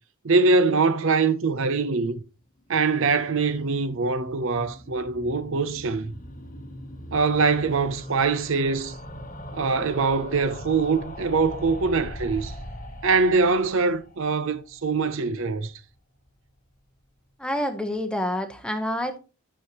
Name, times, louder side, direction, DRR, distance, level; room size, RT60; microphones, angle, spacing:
voice 1, 0.2-2.2 2.7-6.1 7.1-9.0 9.5-12.5 13.0-15.7, right 4 dB, 60° right, 0.6 m, -23 dB
sound 1, 2.6-15.7 16.0-16.1 16.3-16.4 16.6-16.7, left 1 dB, 35° left, 1.1 m, -41 dB
voice 2, 17.4-19.2, left 1 dB, 5° left, 0.9 m, -28 dB
12.5 x 6.5 x 3.0 m
head